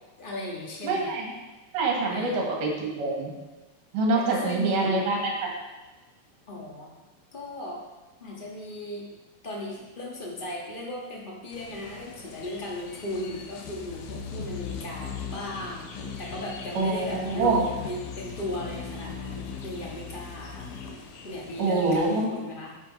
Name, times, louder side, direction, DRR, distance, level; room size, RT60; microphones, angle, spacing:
voice 1, 0.2-1.1 2.1-2.5 4.2-5.2 6.5-7.0 7.3-7.8 8.2-9.1 9.4-15.9 16.2-20.7 21.2-22.8, left 1 dB, 40° left, -2 dB, 0.7 m, -36 dB
voice 2, 0.8-1.3 1.7-3.3 3.9-5.5 16.8-17.6 21.6-22.3, right 3 dB, 70° right, 0 dB, 3.4 m, -25 dB
sound 1, 11.5-22.2, left 5 dB, 70° left, 2.4 m, -39 dB
10.5 x 8.0 x 4.6 m, 1.2 s
omnidirectional pair, 4.0 m